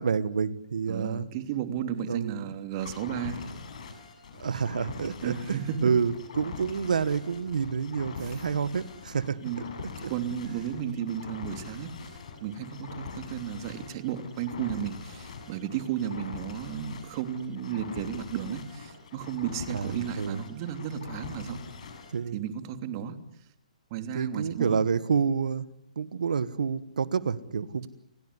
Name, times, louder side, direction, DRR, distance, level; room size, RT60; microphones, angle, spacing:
voice 1, 0.0-1.3 2.1-2.5 4.4-9.4 10.0-10.1 19.7-20.4 22.1-22.4 24.1-25.7 26.0-27.9, right 6 dB, 80° right, 16 dB, 1.8 m, -28 dB
voice 2, 0.9-3.4 5.2-5.9 8.2-8.4 9.4-9.6 10.1-12.1 12.4-21.6 22.3-23.2 23.9-24.8, right 9 dB, 35° right, 9 dB, 3.1 m, -33 dB
sound 1, 2.8-22.2, left 5 dB, 60° left, 7.3 m, -43 dB
29.5 x 18.0 x 9.9 m, 0.76 s
hypercardioid pair, 150°, 4 cm